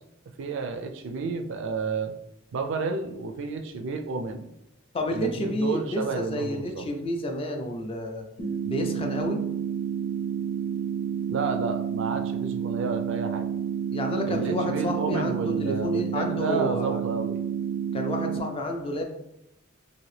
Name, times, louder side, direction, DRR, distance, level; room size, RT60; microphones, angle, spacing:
voice 1, 0.4-2.1 2.5-4.4 5.1-6.9 11.3-13.5 14.3-17.4, right 4 dB, 60° right, 6 dB, 0.4 m, -31 dB
voice 2, 4.9-8.2 8.6-9.4 13.9-17.0 17.9-19.0, left 1 dB, 25° left, 4 dB, 0.4 m, -30 dB
sound 1, 8.4-18.4, right 8 dB, 45° left, 0.8 m, -30 dB
2.8 x 2.7 x 3.1 m, 0.82 s
head